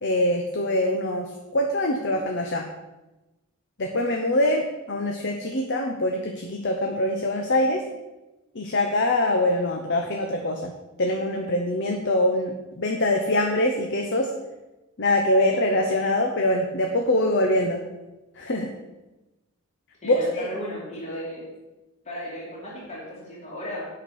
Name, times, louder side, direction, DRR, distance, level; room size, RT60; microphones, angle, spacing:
voice 1, 0.0-2.6 3.8-7.8 8.5-10.7 11.0-14.3 15.0-17.8 18.4-18.7 20.0-20.5, left 1 dB, 55° left, 2 dB, 0.9 m, -24 dB
voice 2, 20.0-21.5 22.0-23.9, left 1 dB, 30° left, -6 dB, 2.5 m, -35 dB
8.7 x 6.0 x 6.4 m, 1.0 s
head